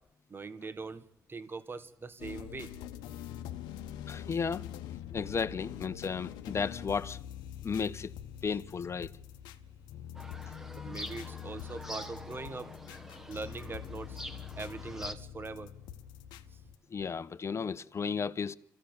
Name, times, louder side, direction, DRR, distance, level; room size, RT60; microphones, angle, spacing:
voice 1, 0.3-1.0 1.3-2.7 10.7-12.7 13.3-14.2 14.6-15.7, right 4 dB, 30° right, 1.3 m, -41 dB
sound 1, 2.2-16.8, left 10 dB, 85° left, 0.9 m, -44 dB
voice 2, 4.1-4.6 5.1-7.2 7.6-8.1 8.4-9.1 16.9-18.6, left 6 dB, 40° left, 0.9 m, -34 dB
sound 2, 10.1-15.1, equal, 5° right, 1.6 m, -45 dB
25.5 x 15.0 x 7.1 m
supercardioid pair, 65°, 7 cm